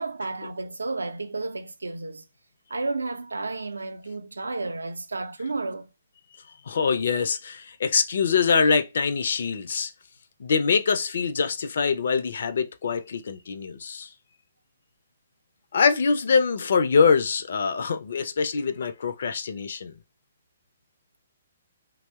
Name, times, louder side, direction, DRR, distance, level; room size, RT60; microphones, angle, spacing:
voice 1, 0.0-2.2 2.7-5.9, right 3 dB, 75° right, 0.4 m, -32 dB
voice 2, 6.7-9.9 10.4-14.1 15.7-19.9, left 5 dB, 55° left, 0.4 m, -24 dB
2.6 x 2.0 x 2.3 m
figure-of-eight pair, 125°, 0 cm